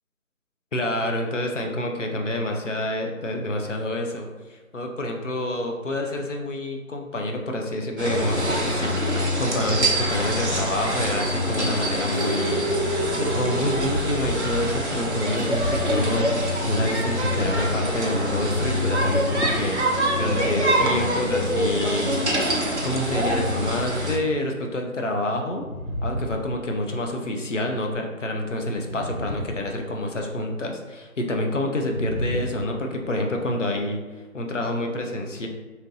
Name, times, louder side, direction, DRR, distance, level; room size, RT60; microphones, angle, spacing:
voice 1, 0.7-22.2 22.8-25.6 26.0-34.0 34.3-35.5, left 1 dB, 60° left, 2 dB, 0.5 m, -28 dB
sound 1, 8.0-24.2, equal, 55° right, 0.5 m, -25 dB
sound 2, 11.5-14.5 14.8-14.9 15.3-15.6 16.7-16.8, right 1 dB, ahead, 0.8 m, -29 dB
sound 3, 25.5-27.1 28.6-30.2 31.8-33.1, equal, 75° left, 0.9 m, -32 dB
2.8 x 2.7 x 2.7 m, 1.3 s
figure-of-eight pair, 175°, 43 cm